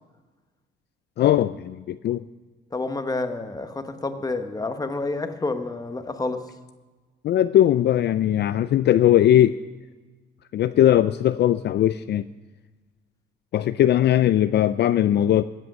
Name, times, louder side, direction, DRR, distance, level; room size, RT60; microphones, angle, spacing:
voice 1, 1.2-2.2 7.2-9.5 10.5-12.2 13.5-15.4, left 12 dB, 60° left, 13 dB, 0.4 m, -19 dB
voice 2, 2.7-6.5, left 3 dB, 20° left, 8 dB, 1.1 m, -29 dB
15.5 x 7.8 x 6.1 m, 1.3 s
cardioid pair, 90°, 20 cm